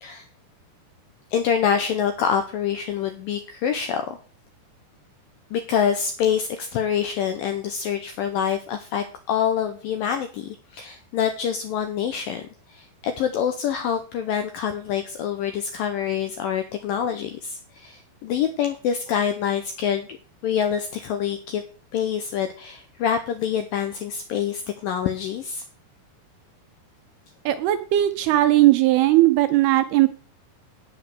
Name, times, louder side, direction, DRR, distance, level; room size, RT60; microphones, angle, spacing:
voice 1, 1.3-4.2 5.5-20.1 20.4-21.6 21.9-25.6, left 8 dB, 80° left, 7 dB, 2.0 m, -26 dB
voice 2, 27.5-30.1, right 15 dB, 80° right, 10 dB, 2.3 m, -18 dB
9.0 x 7.3 x 6.5 m, 0.41 s
omnidirectional pair, 5.0 m